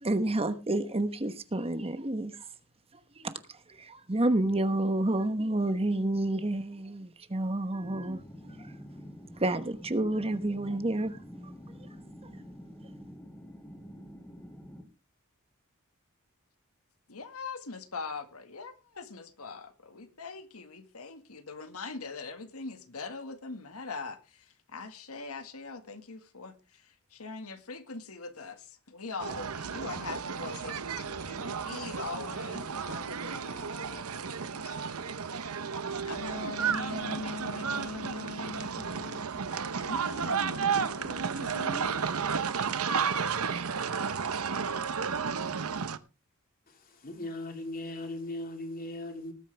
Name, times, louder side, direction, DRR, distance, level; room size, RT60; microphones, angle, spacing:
voice 1, 0.0-2.5 3.2-3.4 3.8-8.7 9.4-11.2, right 1 dB, 25° right, 1.1 m, -29 dB
sound 1, 7.8-14.8, equal, 10° left, 2.8 m, -47 dB
voice 2, 17.1-24.5 24.7-26.5 27.1-35.0 35.4-35.6 36.0-42.0, left 4 dB, 85° left, 1.8 m, -42 dB
sound 2, 29.2-46.0, right 6 dB, 90° right, 0.9 m, -33 dB
voice 3, 46.7-49.3, left 1 dB, 45° left, 3.3 m, -38 dB
19.5 x 9.1 x 3.4 m
head